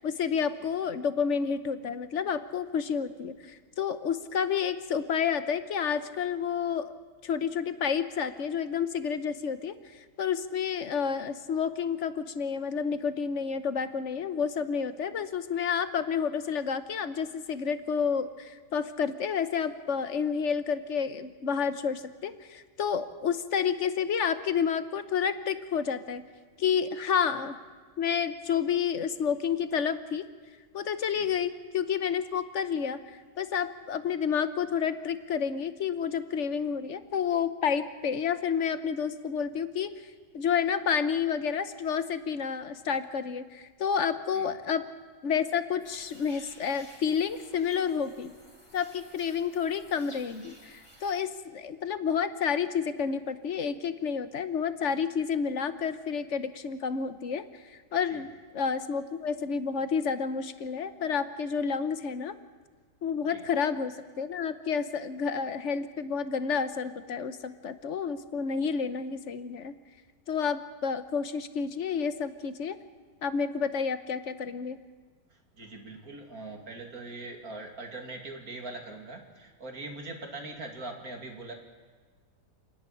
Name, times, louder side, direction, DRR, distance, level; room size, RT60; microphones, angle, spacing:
voice 1, 0.0-6.9 7.2-9.8 10.2-26.2 26.6-27.6 28.0-30.3 30.7-33.0 33.4-40.0 40.3-44.9 45.2-48.3 48.7-62.4 63.0-69.8 70.3-72.8 73.2-74.8, left 6 dB, 50° left, 12 dB, 1.1 m, -30 dB
sound 1, 45.8-51.2, equal, 15° left, 3.8 m, -54 dB
voice 2, 75.3-81.5, right 2 dB, 55° right, 3 dB, 2.9 m, -42 dB
28.5 x 11.0 x 9.9 m, 1.5 s
omnidirectional pair, 1.9 m